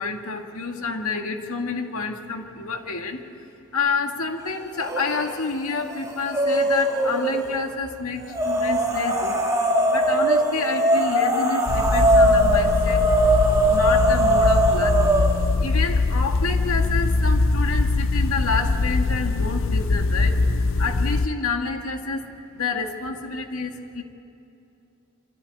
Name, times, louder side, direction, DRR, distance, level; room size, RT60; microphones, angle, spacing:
voice 1, 0.0-3.2 3.7-9.4 9.9-13.0 13.7-15.2 15.6-20.4 20.8-24.0, left 4 dB, 80° left, 4 dB, 1.9 m, -29 dB
sound 1, 4.8-5.4 5.7-7.5 8.3-15.5, right 1 dB, 15° right, 1.9 m, -21 dB
sound 2, 11.7-21.3, left 3 dB, 60° left, 0.6 m, -22 dB
25.0 x 13.5 x 9.7 m, 2.7 s
head